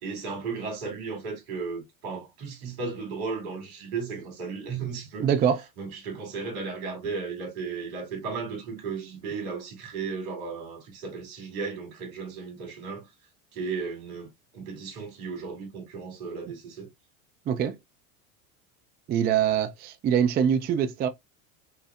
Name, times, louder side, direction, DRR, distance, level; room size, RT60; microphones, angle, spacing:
voice 1, 0.0-5.3 5.8-13.0 13.5-16.9, right 5 dB, 75° right, 2.5 m, -35 dB
voice 2, 5.2-5.6 17.5-17.8 19.1-21.1, right 8 dB, 25° right, 0.4 m, -24 dB
5.5 x 2.0 x 2.3 m
hypercardioid pair, 90°, 43 cm